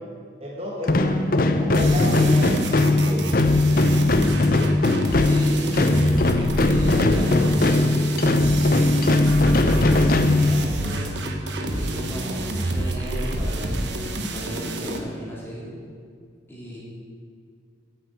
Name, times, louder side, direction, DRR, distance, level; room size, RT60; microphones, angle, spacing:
voice 1, 0.4-3.2 14.8-15.0, left 1 dB, 30° right, -3 dB, 1.5 m, -30 dB
sound 1, 0.8-11.0, left 2 dB, 50° left, 0.6 m, -19 dB
sound 2, 1.7-15.0, right 1 dB, 70° right, 1.2 m, -28 dB
voice 2, 5.2-6.3 6.6-8.2 9.5-11.2 11.6-13.8 14.3-15.7 16.5-16.8, equal, 10° left, -6 dB, 3.0 m, -35 dB
9.1 x 7.9 x 8.0 m, 2.1 s
head